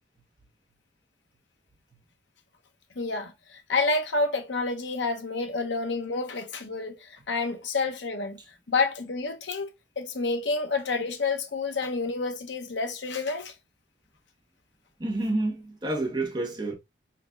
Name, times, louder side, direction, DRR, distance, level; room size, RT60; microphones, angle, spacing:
voice 1, 3.0-8.4 8.7-9.7 10.0-13.5, left 3 dB, 80° left, 0.9 m, -29 dB
voice 2, 15.0-16.7, right 2 dB, 25° right, 1.3 m, -29 dB
4.2 x 4.0 x 2.4 m
head